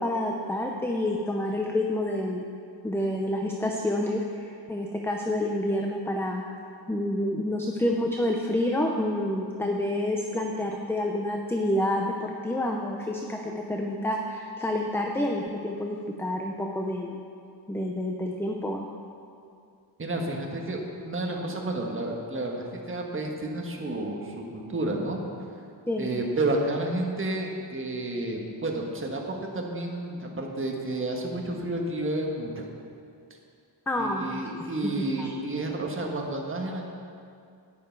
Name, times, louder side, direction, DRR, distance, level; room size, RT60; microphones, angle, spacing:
voice 1, 0.0-2.5 2.8-6.4 6.9-17.2 17.7-18.9 25.9-26.1 33.9-35.3, left 1 dB, 5° left, 1 dB, 0.6 m, -28 dB
voice 2, 20.0-25.2 26.0-32.7 34.0-36.9, right 2 dB, 30° right, 0 dB, 1.5 m, -31 dB
11.5 x 9.5 x 4.6 m, 2.4 s
wide cardioid pair, 125°, 44 cm